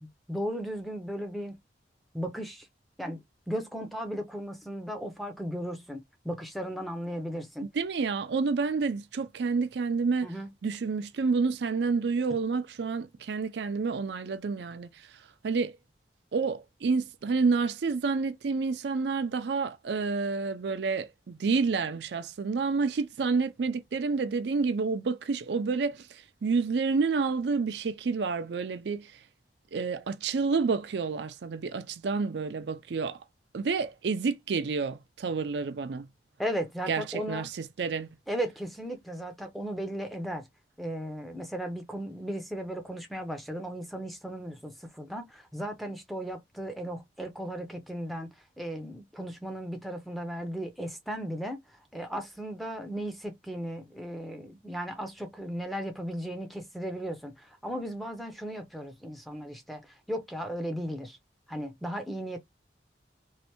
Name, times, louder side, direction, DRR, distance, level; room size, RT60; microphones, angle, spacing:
voice 1, 0.0-1.6 2.1-2.7 3.0-7.7 10.2-10.5 36.4-37.5 38.3-40.5 40.8-48.3 48.6-51.6 51.9-61.2 61.5-62.4, equal, ahead, 0.5 m, -36 dB
voice 2, 7.7-10.3 10.6-15.8 16.3-29.2 29.7-33.2 33.5-36.1 36.9-38.1, right 4 dB, 75° right, 0.4 m, -29 dB
3.2 x 2.5 x 2.9 m
head